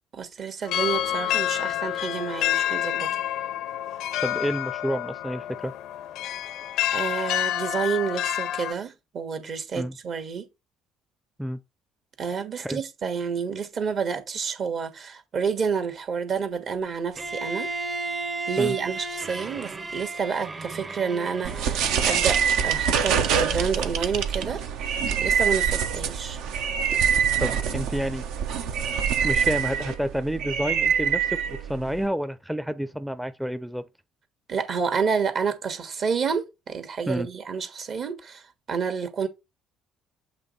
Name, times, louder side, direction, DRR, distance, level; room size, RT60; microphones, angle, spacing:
voice 1, 0.1-3.1 6.9-10.5 12.2-17.7 18.5-24.9 25.2-26.4 34.5-39.3, right 6 dB, 55° right, 1.4 m, -29 dB
sound 1, 0.6-8.7, left 12 dB, 70° left, 0.5 m, -28 dB
voice 2, 4.2-5.7 9.7-9.9 11.4-11.6 12.6-12.8 18.6-18.7 27.4-28.2 29.2-33.9 37.1-37.3, equal, 5° right, 0.5 m, -29 dB
Bowed string instrument, 17.2-22.1, right 3 dB, 30° right, 0.8 m, -34 dB
sound 2, 21.4-32.1, right 7 dB, 70° right, 0.7 m, -25 dB
7.6 x 3.1 x 4.0 m
hypercardioid pair, 55°, 0 cm